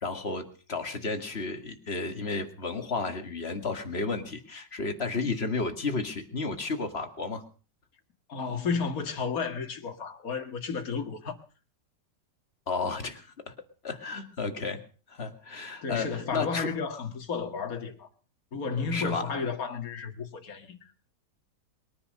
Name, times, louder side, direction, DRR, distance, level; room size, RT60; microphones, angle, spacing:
voice 1, 0.0-7.4 12.7-13.5 13.8-14.8 15.1-16.7 18.9-19.3, left 3 dB, 35° left, 2.1 m, -32 dB
voice 2, 8.3-11.4 15.8-18.1 18.5-20.9, left 5 dB, 50° left, 2.3 m, -32 dB
22.0 x 10.0 x 6.6 m
omnidirectional pair, 1.9 m